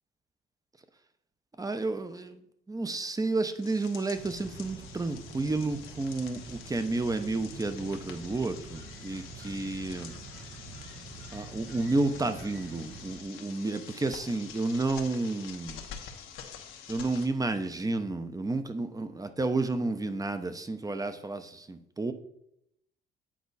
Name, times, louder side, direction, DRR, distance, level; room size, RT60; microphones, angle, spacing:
voice 1, 1.6-10.2 11.3-15.8 16.9-22.1, right 3 dB, 20° right, 9 dB, 0.7 m, -31 dB
sound 1, 3.6-17.3, left 8 dB, 90° left, 1.1 m, -47 dB
sound 2, 4.1-13.2, right 3 dB, 70° right, 1.5 m, -46 dB
8.6 x 4.6 x 4.1 m, 0.79 s
cardioid pair, 90°, 20 cm